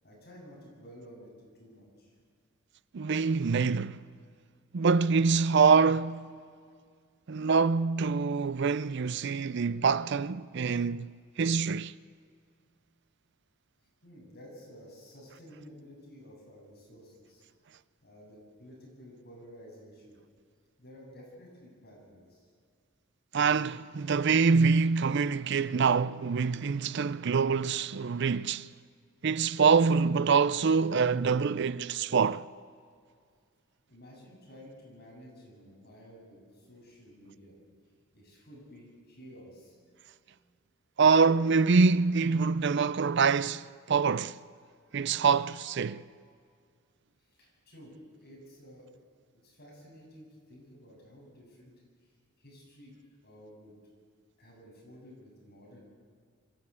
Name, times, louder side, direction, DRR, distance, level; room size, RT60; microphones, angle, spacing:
voice 1, 0.0-2.1 13.8-17.4 18.0-20.2 20.8-22.5 33.9-37.5 38.1-40.4 47.2-48.9 49.3-51.7 52.0-53.8 54.4-55.8, equal, 50° left, 7.9 m, -52 dB
voice 2, 2.9-4.0 4.7-6.4 7.3-11.1 11.4-11.9 23.3-28.7 29.2-32.5 41.0-44.4 44.9-46.0, right 5 dB, 55° right, 0.5 m, -25 dB
25.5 x 14.5 x 8.5 m
head